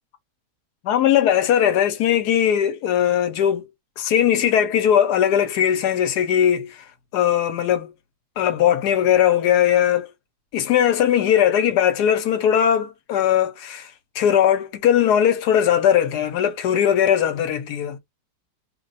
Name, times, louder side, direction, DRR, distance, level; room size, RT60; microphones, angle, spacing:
voice 1, 0.8-3.7 4.0-6.8 7.1-7.9 8.4-10.1 10.5-18.0, left 9 dB, 75° left, 1.2 m, -19 dB
2.9 x 2.1 x 4.0 m
omnidirectional pair, 1.8 m